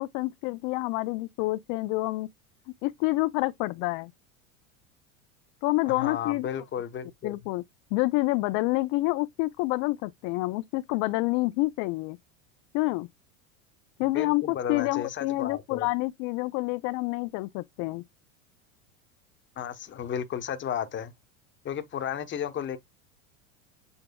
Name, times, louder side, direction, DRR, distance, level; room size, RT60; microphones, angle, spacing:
voice 1, 0.0-2.3 2.8-4.1 5.6-6.5 7.2-7.6 7.9-12.2 12.7-13.1 14.0-18.0, left 21 dB, 50° left, 0.5 m, -28 dB
voice 2, 5.9-7.3 14.1-15.9 19.6-21.1 21.6-22.8, left 9 dB, 30° left, 0.9 m, -33 dB
7.0 x 3.4 x 2.2 m
supercardioid pair, 105°, 41 cm